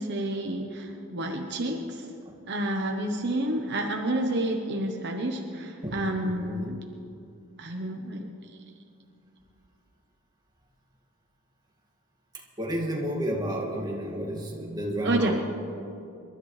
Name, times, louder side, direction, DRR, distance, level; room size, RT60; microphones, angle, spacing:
voice 1, 0.0-2.1 2.5-6.8 7.6-8.3 15.0-15.4, right 1 dB, 55° right, 2 dB, 1.0 m, -29 dB
voice 2, 5.8-6.7 12.6-15.4, equal, 20° right, -1 dB, 2.1 m, -31 dB
27.0 x 12.5 x 3.3 m, 2.6 s
head